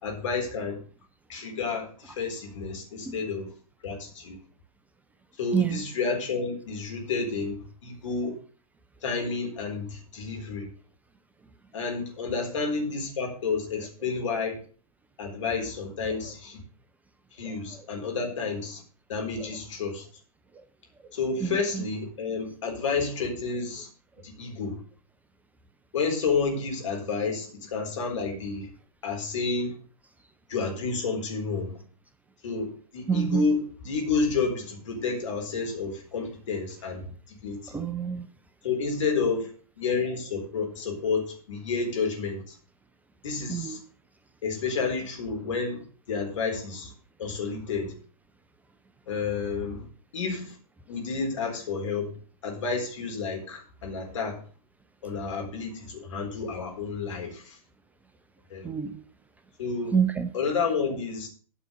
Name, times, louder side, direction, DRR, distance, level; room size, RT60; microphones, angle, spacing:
voice 1, 0.0-0.8 1.3-3.5 3.8-4.4 5.4-8.4 9.0-10.7 11.7-14.6 15.2-16.6 17.4-18.8 19.1-20.1 21.1-23.9 24.2-24.8 25.9-28.7 29.0-29.7 30.5-31.8 32.4-37.8 38.6-39.5 39.8-42.6 43.2-43.8 44.4-46.9 47.2-47.9 49.1-49.9 50.1-50.5 50.9-52.1 52.4-54.4 55.0-57.6 58.5-58.7 59.6-60.0 60.3-61.3, left 4 dB, 55° left, 1 dB, 4.3 m, -30 dB
voice 2, 21.4-21.8 33.1-33.5 37.7-38.3 43.5-43.8 58.6-59.0 59.9-60.3, right 6 dB, 10° right, 10 dB, 0.5 m, -27 dB
9.9 x 5.9 x 8.1 m, 0.42 s
figure-of-eight pair, 110°, 19 cm